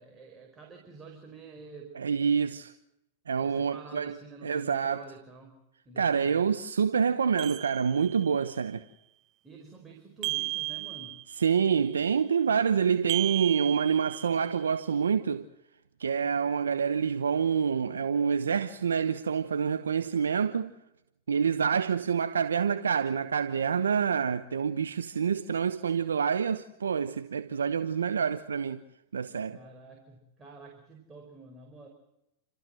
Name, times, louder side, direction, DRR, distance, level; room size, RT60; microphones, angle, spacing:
voice 1, 0.0-1.9 3.4-5.5 5.8-6.5 9.4-11.2 29.5-31.9, right 4 dB, 20° right, 4.9 m, -48 dB
voice 2, 1.9-2.7 3.3-4.1 4.4-5.0 6.0-8.8 11.4-15.5 16.0-20.7 21.3-28.8 29.1-29.6, right 6 dB, 90° right, 1.0 m, -27 dB
sound 1, 7.4-8.4 10.2-11.5 13.1-14.6, right 19 dB, 40° right, 0.9 m, -35 dB
30.0 x 14.0 x 7.7 m
hypercardioid pair, 110°, 0 cm